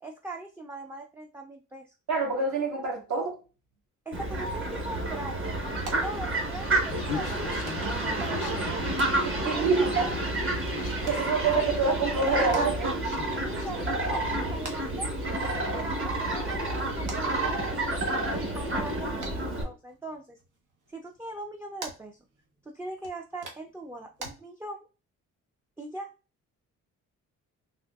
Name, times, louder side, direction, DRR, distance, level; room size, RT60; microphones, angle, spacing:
voice 1, 0.0-1.9 4.1-5.4 6.0-8.9 9.3-10.1 13.4-15.3 15.7-20.4 20.9-22.2 22.6-24.9 25.8-26.1, right 2 dB, 10° right, 0.4 m, -40 dB
voice 2, 2.1-3.4 9.2-10.1 11.0-13.0, right 4 dB, 65° right, 1.6 m, -26 dB
Fowl, 4.1-19.6, right 2 dB, 45° right, 1.2 m, -30 dB
Human voice, 6.9-13.7, left 8 dB, 90° left, 0.5 m, -42 dB
sound 1, 14.4-24.3, right 3 dB, 85° right, 1.1 m, -49 dB
3.6 x 3.1 x 2.3 m
cardioid pair, 90°, 30 cm